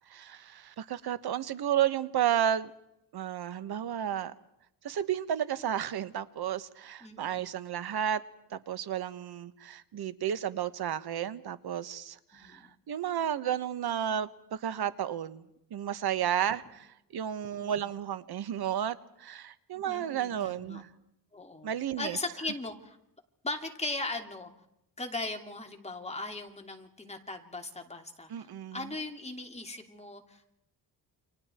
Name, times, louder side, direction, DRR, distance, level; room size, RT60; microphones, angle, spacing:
voice 1, 0.1-2.7 3.1-4.3 4.8-8.2 8.5-15.4 15.7-20.9 21.6-22.2 28.3-28.9, right 10 dB, 65° right, 1.5 m, -32 dB
voice 2, 7.0-7.5 12.3-12.7 17.6-17.9 19.8-20.8 21.3-21.7 22.0-23.0 23.4-24.5 25.0-30.4, left 2 dB, 15° left, 2.9 m, -38 dB
29.5 x 26.5 x 4.6 m
wide cardioid pair, 145°, 41 cm